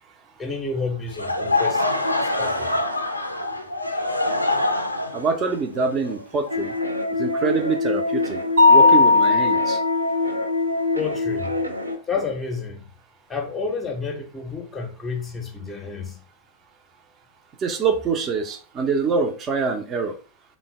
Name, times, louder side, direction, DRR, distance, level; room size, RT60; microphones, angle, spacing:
voice 1, 0.4-1.8 2.2-2.8 10.9-11.5 12.1-12.9 13.3-16.2, left 4 dB, 15° left, 0.6 m, -30 dB
Laughter / Crowd, 1.1-7.0, left 2 dB, 85° left, 0.3 m, -25 dB
voice 2, 5.1-6.7 7.2-8.4 8.7-9.8 17.6-20.1, right 5 dB, 30° right, 0.5 m, -25 dB
sound 1, 6.5-11.9, left 2 dB, 85° right, 0.4 m, -26 dB
Mallet percussion, 8.6-10.4, left 3 dB, 55° right, 0.8 m, -16 dB
3.8 x 2.1 x 3.5 m
figure-of-eight pair, 90°, 0 cm